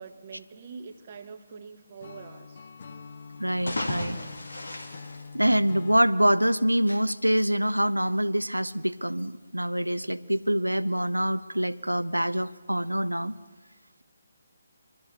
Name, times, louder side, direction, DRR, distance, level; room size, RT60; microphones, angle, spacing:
voice 1, 0.0-2.7, right 5 dB, 35° right, 7 dB, 1.2 m, -44 dB
Acoustic guitar / Strum, 2.0-6.1, left 5 dB, 45° left, 0.9 m, -44 dB
voice 2, 3.4-4.2 5.3-13.4, right 1 dB, 85° right, 15 dB, 0.6 m, -25 dB
sound 1, 3.5-6.0, left 2 dB, 65° left, 2.3 m, -35 dB
23.5 x 12.5 x 4.3 m, 1.3 s
figure-of-eight pair, 145°, 0 cm